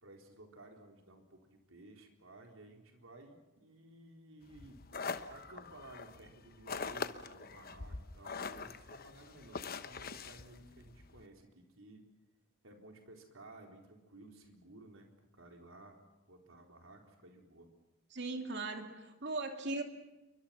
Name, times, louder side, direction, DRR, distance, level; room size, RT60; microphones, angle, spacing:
voice 1, 0.0-4.8 5.3-12.0 12.6-15.1 15.3-16.0 16.3-17.7, right 2 dB, 75° right, 3 dB, 4.1 m, -56 dB
sound 1, 4.5-11.2, left 4 dB, 45° left, 1.0 m, -43 dB
voice 2, 18.1-19.8, right 3 dB, 55° right, 4 dB, 3.0 m, -38 dB
28.5 x 24.0 x 5.8 m, 1.0 s
head